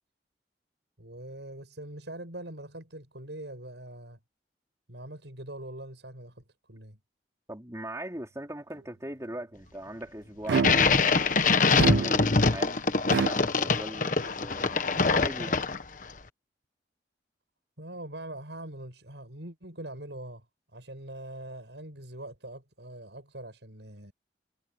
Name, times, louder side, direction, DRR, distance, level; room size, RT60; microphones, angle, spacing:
voice 1, 1.0-4.2 4.9-7.0 17.8-20.5 20.7-24.1, right 1 dB, 85° right, 7.2 m, -43 dB
voice 2, 7.5-11.3 11.8-15.6, right 1 dB, 20° right, 4.3 m, -40 dB
sound 1, 10.5-16.0, left 4 dB, 50° left, 1.3 m, -24 dB
sound 2, 10.5-11.1 11.8-12.5 13.1-13.3, right 5 dB, 65° right, 0.3 m, -27 dB
head